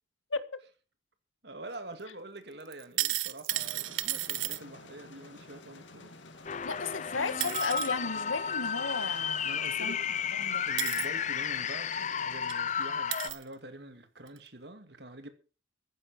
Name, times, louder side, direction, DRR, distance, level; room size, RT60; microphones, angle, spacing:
voice 1, 1.4-6.1 9.4-10.0 10.6-15.3, right 2 dB, 55° right, 2.4 m, -46 dB
sound 1, 2.7-4.6 6.9-7.0 7.4-7.9 9.7-9.8 10.8-11.1 12.0-12.1 12.5-12.6 13.1-13.4 14.3-14.4, right 15 dB, 85° right, 1.0 m, -33 dB
sound 2, 3.5-13.2, left 2 dB, 70° left, 2.2 m, -51 dB
sound 3, 6.4-13.3, left 7 dB, 35° left, 0.6 m, -33 dB
voice 2, 6.6-9.4 9.8-10.0 10.3-10.7, left 4 dB, 85° left, 1.6 m, -34 dB
14.5 x 10.0 x 5.9 m
head